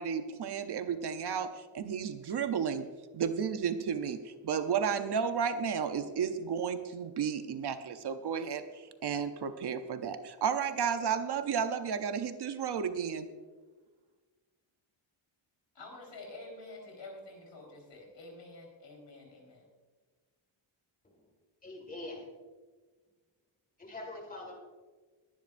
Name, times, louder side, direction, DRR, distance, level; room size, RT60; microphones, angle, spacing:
voice 1, 0.0-2.9 3.1-8.6 9.0-13.3, right 7 dB, 55° right, 9 dB, 0.7 m, -32 dB
voice 2, 15.7-19.7, left 2 dB, 60° left, 0 dB, 4.2 m, -48 dB
voice 3, 21.6-22.3 23.8-24.6, left 2 dB, 15° left, 1 dB, 1.9 m, -43 dB
21.0 x 10.5 x 2.6 m, 1.4 s
wide cardioid pair, 170°, 48 cm